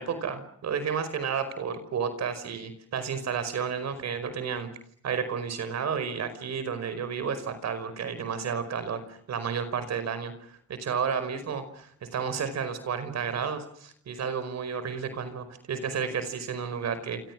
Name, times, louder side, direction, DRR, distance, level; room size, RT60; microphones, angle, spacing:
voice 1, 0.0-4.7 5.0-17.2, right 6 dB, 60° right, 11 dB, 5.2 m, -32 dB
28.0 x 27.0 x 6.2 m, 0.63 s
cardioid pair, 90°, 30 cm